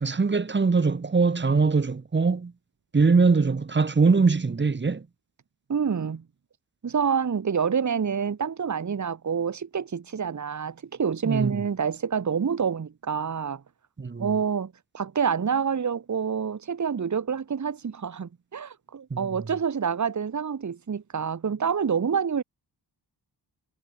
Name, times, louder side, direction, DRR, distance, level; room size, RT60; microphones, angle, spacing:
voice 1, 0.0-2.5 2.9-5.1 11.2-11.6 14.0-14.4 19.1-19.2, right 4 dB, 25° right, 0.9 m, -22 dB
voice 2, 5.7-6.2 6.8-13.6 14.2-22.4, right 6 dB, 40° right, 1.2 m, -27 dB
wide cardioid pair, 155°, 43 cm